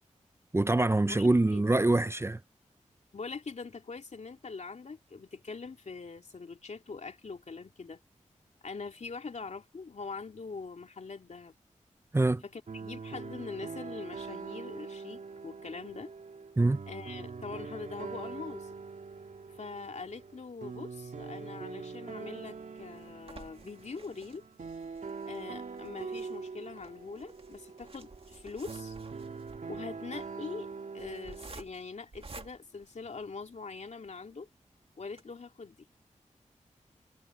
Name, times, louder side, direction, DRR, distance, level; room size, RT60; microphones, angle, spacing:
voice 1, 0.5-2.4 12.1-12.4 16.6-16.8, right 2 dB, 20° right, 0.6 m, -25 dB
voice 2, 1.0-1.6 3.1-8.0 8.6-11.5 12.4-16.1 16.9-18.7 19.6-24.4 25.2-29.0 29.7-30.7 30.9-34.5 35.0-35.8, left 4 dB, 60° left, 3.0 m, -43 dB
sound 1, 12.7-31.5, right 5 dB, 70° right, 2.4 m, -43 dB
sound 2, 22.3-33.7 34.2-34.3 34.6-34.7 35.1-35.2, right 3 dB, 45° right, 2.3 m, -52 dB
cardioid pair, 55°, 13 cm